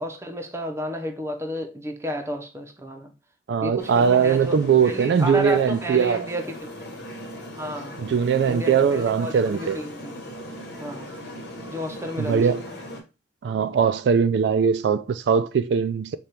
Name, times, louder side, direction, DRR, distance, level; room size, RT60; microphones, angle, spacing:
voice 1, 0.0-3.1 3.6-6.7 7.6-8.0 8.4-10.1 10.8-11.1 11.7-12.6, equal, 15° right, 0.6 m, -32 dB
voice 2, 3.5-6.3 8.0-9.8 12.2-12.6 13.4-16.2, right 6 dB, 75° right, 0.3 m, -21 dB
sound 1, 3.8-13.0, equal, 60° left, 1.5 m, -39 dB
5.1 x 2.3 x 4.2 m
head